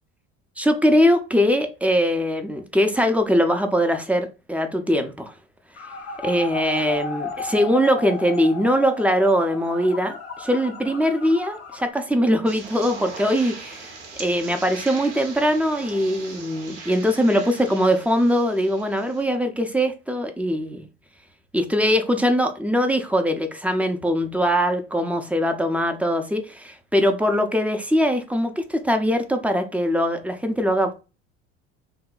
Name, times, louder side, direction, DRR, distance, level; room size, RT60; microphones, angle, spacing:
voice 1, 0.6-5.3 6.2-13.9 14.2-20.9 21.5-30.9, equal, 5° right, 0.5 m, -21 dB
sound 1, 5.8-11.9, left 5 dB, 45° left, 0.7 m, -34 dB
sound 2, 12.5-19.3, right 4 dB, 90° right, 0.8 m, -40 dB
2.7 x 2.2 x 3.8 m
hypercardioid pair, 70°, 34 cm